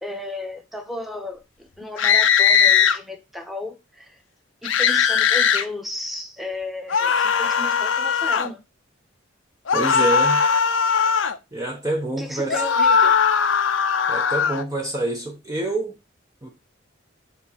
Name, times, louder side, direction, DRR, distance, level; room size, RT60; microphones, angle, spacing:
voice 1, 0.0-4.2 4.6-8.6 12.2-13.2, left 1 dB, ahead, 1.1 m, -34 dB
sound 1, 2.0-3.0 4.6-5.6 6.9-8.5 9.7-11.4 12.5-14.6, left 6 dB, 85° left, 0.7 m, -19 dB
voice 2, 9.7-10.4 11.5-12.6 14.1-16.0 16.4-16.5, right 2 dB, 20° right, 0.9 m, -27 dB
7.3 x 2.9 x 5.4 m
head